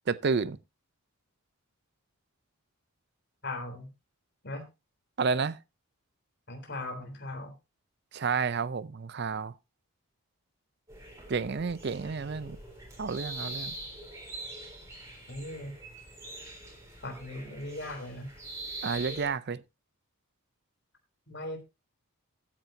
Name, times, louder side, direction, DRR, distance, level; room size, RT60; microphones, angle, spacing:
voice 1, 0.1-0.6 5.2-5.6 8.1-9.5 11.3-12.6 13.0-13.7 18.8-19.6, right 5 dB, 45° right, 0.5 m, -30 dB
voice 2, 3.4-3.9 4.4-4.7 6.5-7.5 15.3-15.7 17.0-18.3 21.3-21.6, left 1 dB, 50° left, 3.4 m, -38 dB
sound 1, 10.9-19.3, right 2 dB, 15° right, 4.0 m, -43 dB
14.5 x 9.0 x 2.7 m
head